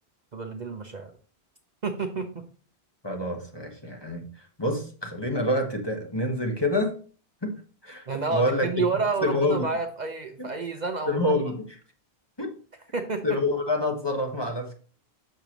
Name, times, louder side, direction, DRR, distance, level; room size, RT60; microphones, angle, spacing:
voice 1, 0.3-1.1 1.8-2.4 8.1-11.4 12.9-13.4, right 4 dB, 45° right, 5 dB, 0.8 m, -30 dB
voice 2, 3.0-6.9 7.4-7.5 7.8-8.8 9.2-9.7 10.4-10.5 11.1-11.8 12.4-12.6 13.2-14.8, left 1 dB, 25° left, 3 dB, 1.2 m, -27 dB
6.6 x 6.6 x 3.0 m, 0.40 s
omnidirectional pair, 1.1 m